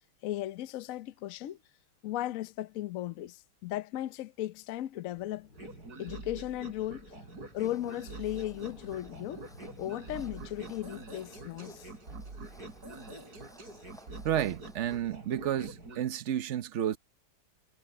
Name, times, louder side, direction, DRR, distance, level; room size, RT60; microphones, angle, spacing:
voice 1, 0.2-1.6 2.0-5.5 6.0-7.1 7.5-9.4 9.8-11.9, left 14 dB, 85° left, 0.7 m, -36 dB
sound 1, 5.1-12.9, left 3 dB, 55° left, 2.7 m, -59 dB
sound 2, 5.5-16.0, right 2 dB, 45° right, 4.1 m, -46 dB
sound 3, 7.4-15.0, equal, ahead, 5.9 m, -58 dB
voice 2, 14.2-17.0, right 10 dB, 70° right, 0.7 m, -31 dB
omnidirectional pair, 2.3 m